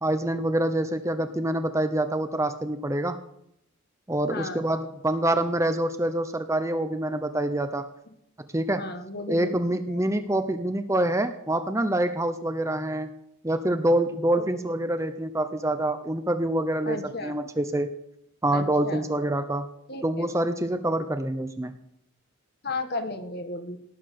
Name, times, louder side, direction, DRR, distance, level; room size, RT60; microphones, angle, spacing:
voice 1, 0.0-3.2 4.1-7.9 8.5-8.9 9.3-13.1 13.4-17.9 18.4-19.7 20.0-21.7, right 1 dB, 15° right, 9 dB, 0.8 m, -26 dB
voice 2, 4.2-4.7 8.8-9.5 9.9-10.0 14.3-14.4 16.9-17.3 18.5-19.1 19.9-20.2 22.6-23.8, left 2 dB, 45° left, 8 dB, 1.7 m, -34 dB
18.5 x 9.9 x 6.6 m, 0.75 s
head